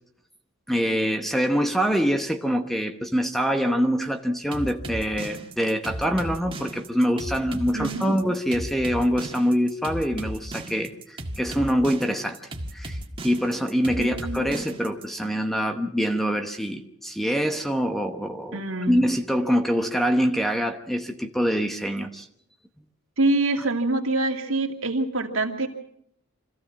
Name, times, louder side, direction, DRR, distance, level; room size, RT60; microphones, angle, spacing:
voice 1, 0.7-12.4 12.7-13.0 13.2-18.6 18.9-22.3, equal, ahead, 6 dB, 0.9 m, -25 dB
sound 1, 4.5-15.0, right 1 dB, 25° right, 1.8 m, -35 dB
voice 2, 7.7-8.1 14.0-14.5 18.5-19.0 23.2-25.7, right 2 dB, 65° right, 3 dB, 2.3 m, -25 dB
26.0 x 15.0 x 7.3 m, 0.76 s
head